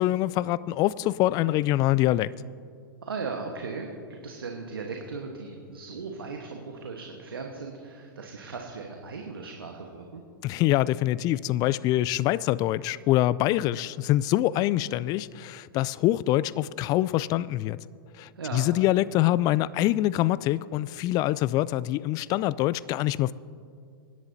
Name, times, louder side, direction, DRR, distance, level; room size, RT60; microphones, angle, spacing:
voice 1, 0.0-2.3 10.4-17.8 18.2-23.3, left 15 dB, 35° left, 0.3 m, -25 dB
voice 2, 3.0-10.2 18.4-18.7, right 4 dB, 80° right, 1.3 m, -37 dB
24.0 x 10.5 x 2.8 m
figure-of-eight pair, 100°, 12 cm